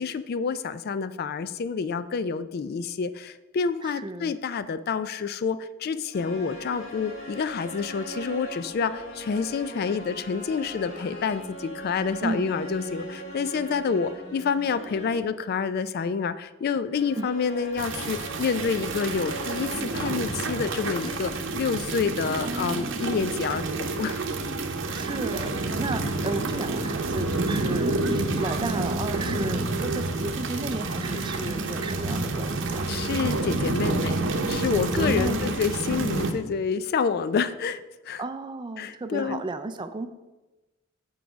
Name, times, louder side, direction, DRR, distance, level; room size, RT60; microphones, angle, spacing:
voice 1, 0.0-24.2 32.8-34.2 34.5-38.2 38.8-39.4, left 5 dB, 50° left, 13 dB, 0.3 m, -28 dB
voice 2, 3.8-4.3 12.2-12.5 17.2-17.3 22.4-23.2 24.9-32.9 34.7-35.7 38.2-40.1, right 2 dB, 25° right, 9 dB, 0.4 m, -33 dB
sound 1, 6.1-15.4 16.9-21.1, right 1 dB, 75° left, 2.1 m, -40 dB
sound 2, 17.8-36.3, right 2 dB, 65° right, 0.8 m, -29 dB
8.2 x 4.8 x 5.0 m, 1.1 s
head